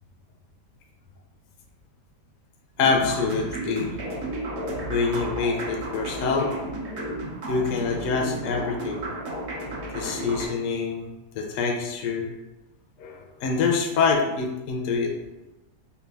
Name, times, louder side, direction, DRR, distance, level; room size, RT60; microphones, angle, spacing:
voice 1, 2.8-3.9 4.9-6.5 7.5-9.1 9.9-11.1 11.4-12.3 13.0-15.1, left 4 dB, 75° left, 2 dB, 0.7 m, -25 dB
sound 1, 2.8-10.5, right 1 dB, 65° right, 0.7 m, -33 dB
3.4 x 2.3 x 3.3 m, 0.99 s
omnidirectional pair, 1.9 m